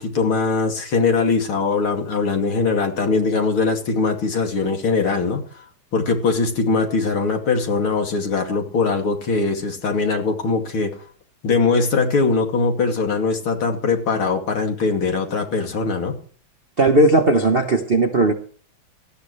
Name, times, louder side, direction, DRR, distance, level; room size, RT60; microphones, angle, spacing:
voice 1, 0.0-5.6 5.9-10.9 11.4-16.2, left 4 dB, 75° left, 3.3 m, -21 dB
voice 2, 16.8-18.3, right 2 dB, 40° right, 0.9 m, -16 dB
18.0 x 13.5 x 3.2 m
omnidirectional pair, 2.4 m